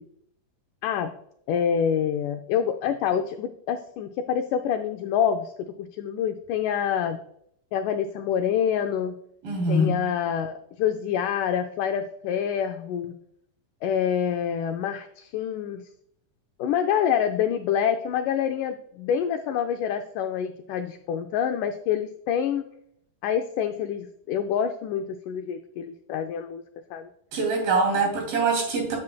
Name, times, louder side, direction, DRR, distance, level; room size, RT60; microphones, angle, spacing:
voice 1, 1.5-5.5 5.8-7.2 7.7-9.2 9.7-13.1 13.8-15.8 16.6-22.7 23.2-26.6 26.9-27.1, left 8 dB, 85° left, 7 dB, 1.8 m, -26 dB
voice 2, 9.4-10.0 27.3-29.0, right 2 dB, 70° right, 0 dB, 4.5 m, -23 dB
9.5 x 8.6 x 2.3 m, 0.70 s
omnidirectional pair, 4.2 m